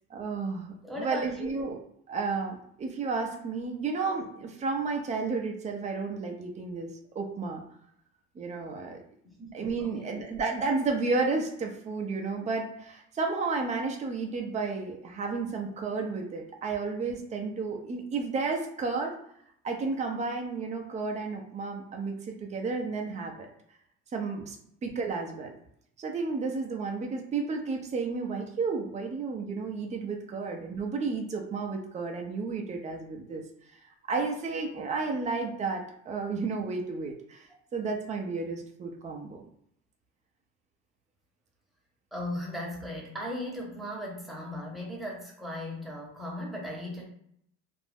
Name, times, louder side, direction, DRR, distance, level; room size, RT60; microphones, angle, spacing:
voice 1, 0.1-1.8 2.1-7.6 8.4-9.0 9.5-19.2 19.6-23.5 24.1-24.6 24.8-25.5 26.0-33.4 34.1-39.4, right 4 dB, 25° right, 2 dB, 0.6 m, -32 dB
voice 2, 0.8-1.7 9.2-10.3 37.5-37.6 42.1-47.0, left 1 dB, ahead, -4 dB, 1.0 m, -37 dB
2.5 x 2.1 x 3.4 m, 0.70 s
supercardioid pair, 95°, 30 cm